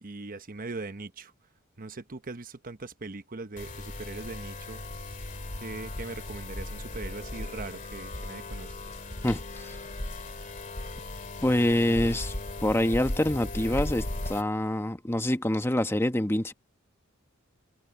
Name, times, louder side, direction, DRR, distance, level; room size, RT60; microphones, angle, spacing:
voice 1, 0.0-1.3 1.8-4.8 5.6-8.7, right 3 dB, 45° right, 1.0 m, -40 dB
sound 1, 3.6-14.4, left 2 dB, 40° left, 2.2 m, -37 dB
voice 2, 9.2-9.8 11.4-12.3 12.6-16.5, left 1 dB, 10° left, 1.0 m, -26 dB
open air
head